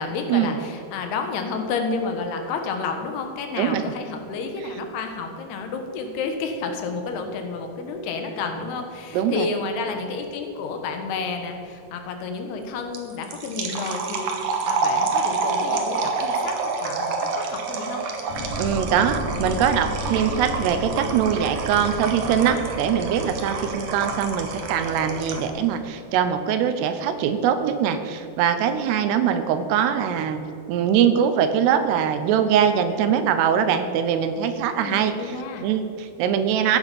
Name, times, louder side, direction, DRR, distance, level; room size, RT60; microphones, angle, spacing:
voice 1, 0.0-18.0 34.8-35.7, left 4 dB, 75° left, 5 dB, 3.1 m, -30 dB
voice 2, 9.1-9.5 18.6-30.4 30.7-35.1 35.6-36.8, right 8 dB, 80° right, 9 dB, 2.9 m, -22 dB
sound 1, 12.9-25.6, right 4 dB, 65° right, 2.1 m, -28 dB
sound 2, 18.3-25.5, left 1 dB, 60° left, 3.8 m, -34 dB
15.5 x 9.7 x 5.3 m, 2.7 s
omnidirectional pair, 4.8 m